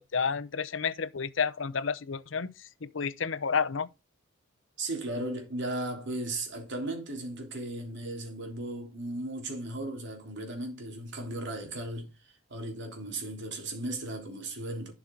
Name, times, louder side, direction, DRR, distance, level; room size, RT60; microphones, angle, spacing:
voice 1, 0.0-3.9, left 6 dB, 70° left, 0.8 m, -31 dB
voice 2, 4.8-12.1 12.5-14.9, right 1 dB, 60° right, 3.4 m, -36 dB
11.5 x 6.1 x 3.8 m
head